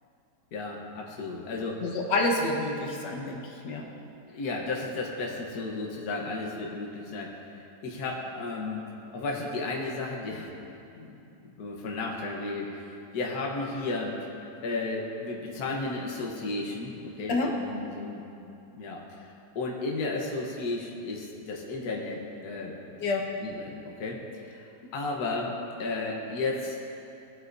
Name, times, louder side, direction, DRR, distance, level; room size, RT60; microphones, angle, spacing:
voice 1, 0.5-1.9 4.3-8.8 9.1-10.5 10.9-14.1 14.6-22.8 23.4-26.9, left 3 dB, 65° left, -1 dB, 1.5 m, -34 dB
voice 2, 1.8-3.8 17.3-17.5 23.0-23.2, left 2 dB, 85° left, -1 dB, 1.9 m, -28 dB
20.0 x 8.0 x 2.6 m, 2.8 s
omnidirectional pair, 1.9 m